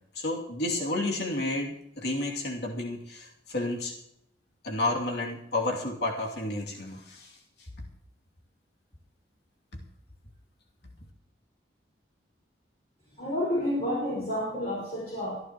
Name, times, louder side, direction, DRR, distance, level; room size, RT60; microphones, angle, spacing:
voice 1, 0.1-3.9 4.6-7.3, left 2 dB, 60° left, -1 dB, 2.7 m, -31 dB
voice 2, 13.2-15.4, left 1 dB, 35° left, -5 dB, 5.4 m, -30 dB
23.5 x 11.5 x 3.1 m, 0.80 s
head